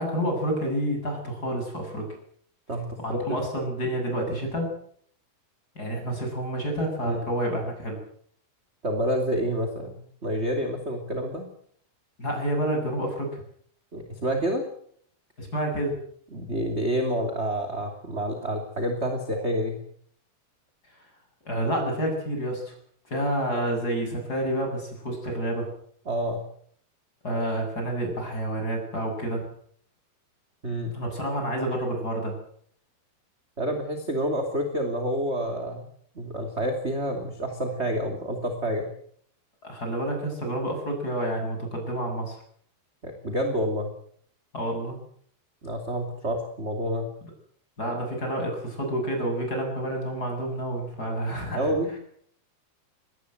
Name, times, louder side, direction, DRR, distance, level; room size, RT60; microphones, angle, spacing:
voice 1, 0.0-2.1 3.0-4.7 5.7-8.0 12.2-13.4 15.4-16.0 21.4-22.7 23.1-25.7 27.2-29.4 30.9-32.3 39.6-42.4 44.5-45.0 47.8-51.8, right 1 dB, 20° left, 3 dB, 8.4 m, -29 dB
voice 2, 2.7-3.4 7.1-7.2 8.8-9.9 10.2-11.5 13.9-14.6 16.3-19.8 26.1-26.4 30.6-30.9 33.6-35.8 36.1-38.9 43.0-43.9 45.6-47.1 51.6-51.9, equal, 20° right, 4 dB, 2.4 m, -28 dB
23.5 x 20.0 x 8.0 m, 0.63 s
omnidirectional pair, 5.0 m